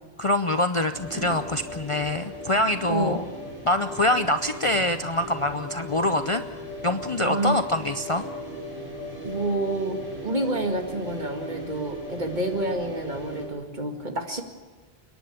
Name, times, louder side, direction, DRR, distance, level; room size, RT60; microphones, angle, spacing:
voice 1, 0.2-3.2 3.6-6.4 6.8-8.2, left 1 dB, 35° left, 8 dB, 0.6 m, -25 dB
sound 1, 0.9-13.5, equal, 20° right, 7.0 m, -37 dB
voice 2, 2.9-3.2 7.2-7.6 9.2-14.4, right 2 dB, 45° right, 3 dB, 2.2 m, -28 dB
29.0 x 11.0 x 8.6 m, 1.4 s
omnidirectional pair, 1.1 m